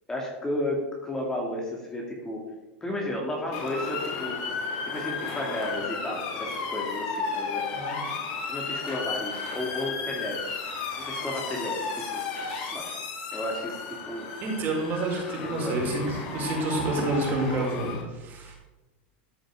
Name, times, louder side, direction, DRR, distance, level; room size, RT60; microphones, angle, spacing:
voice 1, 0.1-2.4 2.8-4.4 4.8-7.6 8.5-10.6 11.1-12.2 12.7-12.9 13.3-13.8 14.1-14.3 15.4-15.8, left 1 dB, 10° left, -1 dB, 2.6 m, -33 dB
Motor vehicle (road) / Siren, 3.5-18.0, left 5 dB, 50° left, 3.9 m, -34 dB
voice 2, 14.4-18.6, right 2 dB, 35° right, -1 dB, 4.9 m, -29 dB
14.0 x 6.4 x 7.0 m, 1.1 s
supercardioid pair, 145°, 6 cm